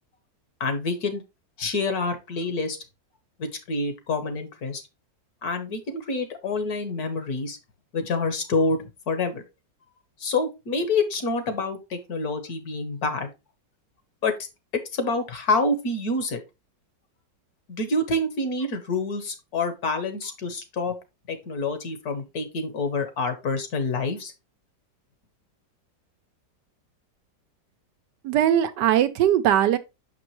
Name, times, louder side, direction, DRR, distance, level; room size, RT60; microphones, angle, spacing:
voice 1, 0.6-1.2 1.6-2.8 3.4-4.8 5.4-7.6 7.9-9.4 10.2-13.3 14.2-14.4 14.7-16.4 17.7-20.9 21.3-24.3, left 3 dB, 60° left, 1.6 m, -27 dB
voice 2, 28.2-29.8, right 11 dB, 75° right, 1.2 m, -20 dB
6.2 x 6.0 x 3.0 m
omnidirectional pair, 1.9 m